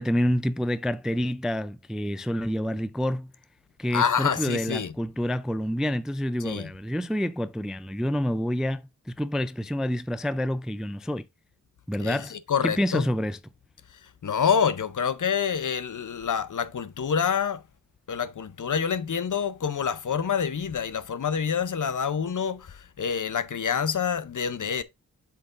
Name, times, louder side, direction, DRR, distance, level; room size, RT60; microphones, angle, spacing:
voice 1, 0.0-3.3 3.8-11.3 11.9-12.3 12.6-13.4, equal, ahead, 0.3 m, -28 dB
voice 2, 3.9-4.9 6.4-6.7 12.0-13.0 14.2-17.6 18.1-24.8, left 7 dB, 55° left, 0.6 m, -27 dB
7.5 x 5.7 x 2.5 m
wide cardioid pair, 75°, 37 cm